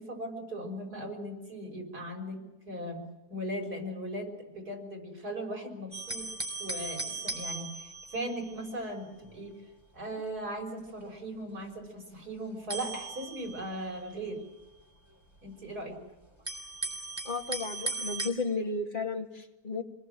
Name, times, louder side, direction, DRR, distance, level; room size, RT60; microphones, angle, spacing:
voice 1, 0.0-3.0 3.3-6.3 6.6-9.5 9.9-14.4 15.4-16.0, right 1 dB, 80° right, 1 dB, 6.4 m, -38 dB
sound 1, 5.9-8.9 9.2-9.4 10.1-11.1 12.7-14.6 15.4-15.5 16.5-18.3, right 3 dB, 10° right, 3.5 m, -38 dB
voice 2, 17.2-19.8, left 3 dB, 30° left, 2 dB, 2.3 m, -33 dB
26.5 x 20.0 x 7.7 m, 1.0 s
omnidirectional pair, 1.6 m